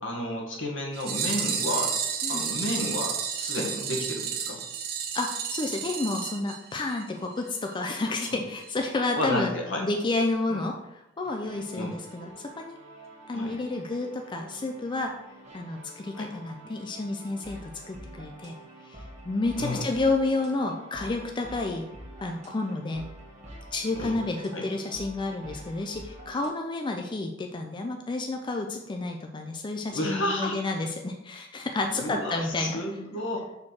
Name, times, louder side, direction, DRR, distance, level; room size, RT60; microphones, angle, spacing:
voice 1, 0.0-1.9 2.3-4.6 8.3-8.4 9.1-9.8 10.5-10.6 11.7-11.9 13.3-13.5 16.1-16.3 19.6-19.9 23.9-24.2 24.5-24.6 29.9-30.6 31.9-33.5, left 1 dB, 75° left, 0 dB, 1.5 m, -31 dB
sound 1, 0.9-7.1 7.4-7.5 7.7-7.8 8.2-8.3 8.6-8.7, right 7 dB, 55° right, 0.9 m, -31 dB
voice 2, 5.1-9.5 9.8-10.7 11.2-12.3 12.6-12.7 13.3-15.1 15.5-18.5 18.8-21.9 22.2-23.1 23.7-32.8, left 2 dB, 25° left, 3 dB, 0.4 m, -30 dB
sound 2, 11.2-26.5, right 1 dB, 40° right, 1.4 m, -47 dB
6.1 x 4.4 x 4.3 m, 0.90 s
head